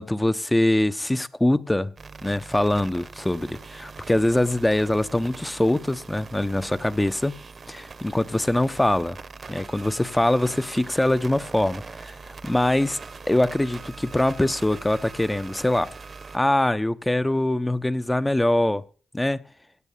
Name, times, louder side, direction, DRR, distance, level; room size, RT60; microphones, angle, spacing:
voice 1, 0.0-1.9 2.2-7.3 7.7-9.2 9.5-13.0 13.3-15.9 16.3-18.8 19.1-19.4, left 1 dB, 15° left, 1.1 m, -23 dB
sound 1, 2.0-16.4, right 4 dB, 50° right, 1.3 m, -42 dB
17.0 x 6.7 x 8.5 m
cardioid pair, 55°, 0 cm